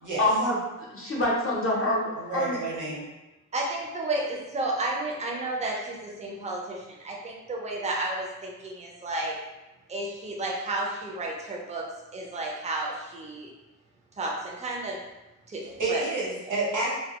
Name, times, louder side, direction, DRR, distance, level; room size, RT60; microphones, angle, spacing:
voice 1, 0.2-2.6, left 1 dB, 45° left, -4 dB, 0.6 m, -26 dB
voice 2, 2.2-3.0 15.8-16.9, right 2 dB, 75° right, -4 dB, 0.8 m, -29 dB
voice 3, 3.5-9.4 9.9-11.8 12.1-13.5 14.2-15.0 15.5-16.0, right 2 dB, 25° right, -2 dB, 0.4 m, -32 dB
2.1 x 2.1 x 2.8 m, 1.0 s
wide cardioid pair, 140°, 31 cm